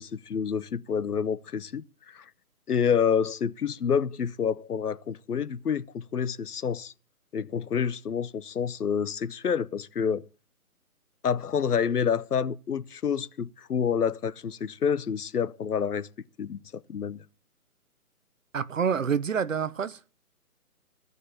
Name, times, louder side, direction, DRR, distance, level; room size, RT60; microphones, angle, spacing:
voice 1, 0.0-2.2 2.7-6.9 7.3-10.3 11.2-16.1 16.4-17.2, left 7 dB, 85° left, 0.9 m, -28 dB
voice 2, 18.5-20.0, right 7 dB, 60° right, 0.9 m, -27 dB
15.0 x 5.4 x 8.3 m
hypercardioid pair, 170°, 45 cm